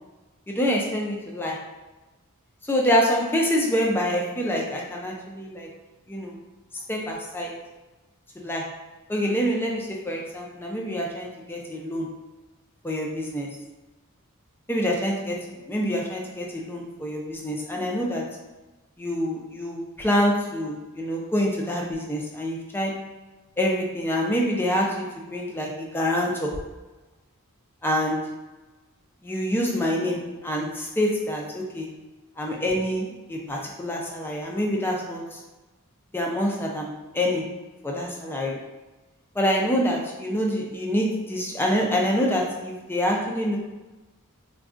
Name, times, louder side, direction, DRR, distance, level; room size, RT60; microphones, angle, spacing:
voice 1, 0.5-1.6 2.7-5.7 6.1-6.4 6.9-7.6 8.4-8.8 9.1-12.1 12.8-13.6 14.7-18.3 19.0-23.0 23.6-26.6 27.8-28.3 29.2-31.9 32.4-35.4 36.1-37.5 37.8-38.6 39.4-43.6, equal, 10° left, -1 dB, 0.3 m, -26 dB
3.5 x 2.2 x 2.4 m, 1.2 s
head